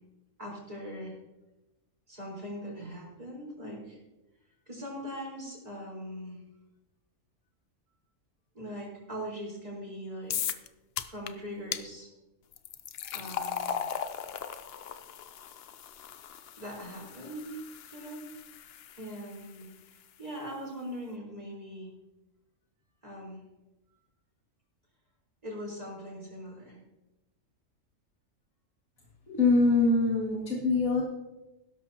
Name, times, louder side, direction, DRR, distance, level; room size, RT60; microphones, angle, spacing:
voice 1, 0.4-1.2 2.1-4.0 4.7-6.4 8.5-10.5 11.0-12.1 13.1-13.8 16.6-17.6 17.9-18.2 18.9-21.9 23.0-23.4 25.4-26.8, equal, 30° right, -4 dB, 4.4 m, -41 dB
sound 1, 10.3-10.7 11.0-11.3 11.7-11.8 12.5-19.7, left 8 dB, 60° left, 0.7 m, -38 dB
voice 2, 29.3-31.0, left 3 dB, 85° left, -4 dB, 2.5 m, -24 dB
16.0 x 12.5 x 2.9 m, 1.0 s
omnidirectional pair, 1.4 m